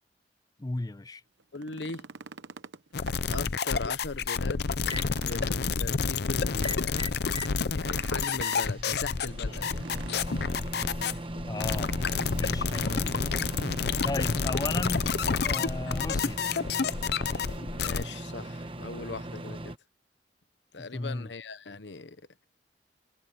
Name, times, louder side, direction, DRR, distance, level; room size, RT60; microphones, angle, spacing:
voice 1, 0.6-1.2 11.4-11.9 12.4-13.2 14.0-16.4 20.8-21.3, left 2 dB, 20° left, 0.5 m, -35 dB
sound 1, 1.4-3.7 4.1-4.2 4.6-6.5 7.7-8.8 9.7-10.6 11.8-12.4 12.7-12.8 13.4-14.0 15.1-15.2, right 4 dB, 90° right, 0.9 m, -46 dB
voice 2, 1.5-2.1 3.3-4.7 5.1-7.2 7.7-9.8 17.7-19.7 20.7-22.2, left 3 dB, 85° left, 1.0 m, -39 dB
sound 2, 2.9-18.1, left 5 dB, 65° left, 0.7 m, -29 dB
Microwave oven, 4.1-5.1 6.5-7.6 8.0-19.8, right 1 dB, 30° right, 1.1 m, -39 dB
head